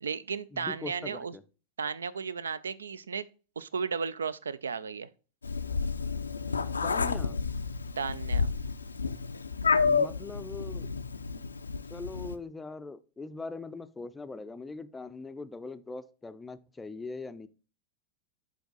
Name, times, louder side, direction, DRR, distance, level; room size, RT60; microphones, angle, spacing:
voice 1, 0.0-1.4 1.8-3.3 3.6-5.1 8.0-8.5, right 5 dB, 70° right, 0.3 m, -34 dB
voice 2, 0.5-1.4 6.8-7.4 9.8-10.9 11.9-17.5, left 3 dB, 10° left, 0.4 m, -41 dB
Meow, 5.4-12.3, left 5 dB, 75° left, 0.3 m, -30 dB
6.8 x 4.6 x 3.8 m
figure-of-eight pair, 90°, 0 cm